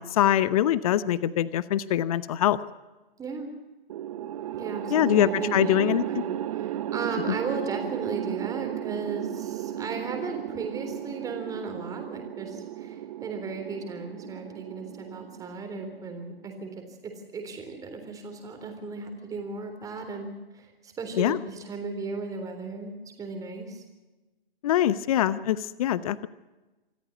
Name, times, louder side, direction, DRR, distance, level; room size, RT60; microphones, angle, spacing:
voice 1, 0.0-2.6 4.9-6.2 21.2-21.4 24.6-26.3, left 12 dB, 40° left, 17 dB, 0.8 m, -24 dB
sound 1, 3.9-16.2, right 12 dB, 35° right, 0.8 m, -34 dB
voice 2, 4.6-6.2 6.5-16.7 17.0-23.8, right 4 dB, 10° right, 4 dB, 3.7 m, -36 dB
25.5 x 14.0 x 8.2 m, 1.1 s
figure-of-eight pair, 135°, 29 cm